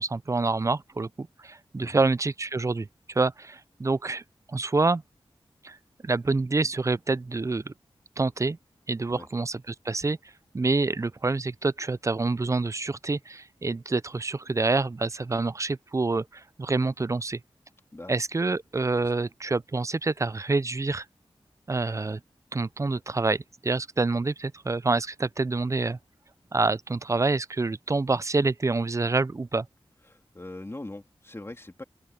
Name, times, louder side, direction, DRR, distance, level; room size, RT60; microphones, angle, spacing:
voice 1, 0.0-4.2 4.5-5.0 5.6-5.8 6.0-7.7 8.2-8.6 8.9-10.2 10.5-17.4 18.1-21.1 21.7-22.2 22.5-26.0 26.5-29.7, right 3 dB, 30° right, 0.4 m, -27 dB
voice 2, 30.1-31.8, left 2 dB, 25° left, 2.9 m, -41 dB
open air
wide cardioid pair, 70°, 10 cm